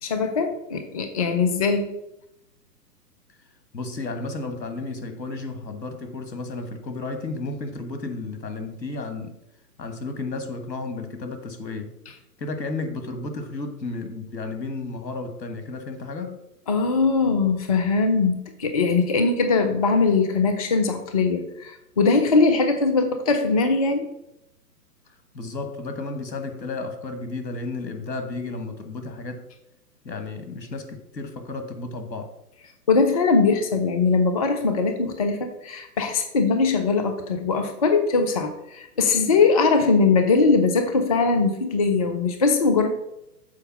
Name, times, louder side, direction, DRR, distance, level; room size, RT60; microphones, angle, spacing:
voice 1, 0.0-1.9 16.7-24.1 32.9-42.9, left 4 dB, 25° left, 7 dB, 0.4 m, -21 dB
voice 2, 3.7-9.3 9.8-11.9 12.4-16.4 25.3-29.5 30.0-32.3, left 3 dB, 80° left, 7 dB, 1.6 m, -33 dB
7.1 x 4.4 x 5.9 m, 0.84 s
figure-of-eight pair, 125°, 50 cm